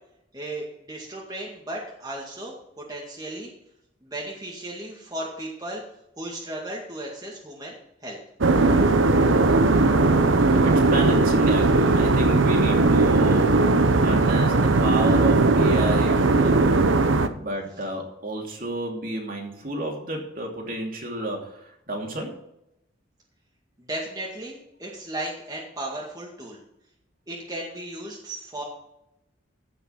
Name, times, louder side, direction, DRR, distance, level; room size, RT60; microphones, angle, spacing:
voice 1, 0.3-3.5 4.0-5.8 6.2-7.7 8.0-8.2 23.9-26.6 27.3-28.6, right 1 dB, 20° right, -3 dB, 2.1 m, -35 dB
sound 1, 8.4-17.3, right 3 dB, 85° right, 0.9 m, -18 dB
voice 2, 10.6-13.5 13.9-16.7 17.4-21.6 21.9-22.3, right 1 dB, 45° right, 0 dB, 2.8 m, -31 dB
15.5 x 5.8 x 5.8 m, 0.81 s
head